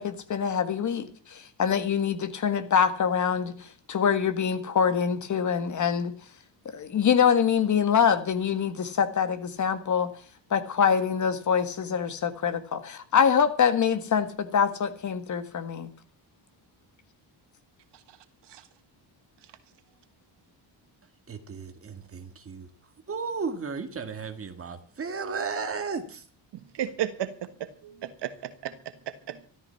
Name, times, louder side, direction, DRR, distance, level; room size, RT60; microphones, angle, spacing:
voice 1, 0.0-6.1 6.7-10.1 10.5-15.9, left 7 dB, 40° left, 10 dB, 1.8 m, -25 dB
voice 2, 21.3-22.7 23.1-26.2, right 5 dB, 30° right, 8 dB, 2.0 m, -34 dB
voice 3, 26.5-27.3 27.6-29.5, right 10 dB, 65° right, 11 dB, 1.5 m, -35 dB
13.5 x 13.5 x 5.8 m, 0.44 s
cardioid pair, 160°, 44 cm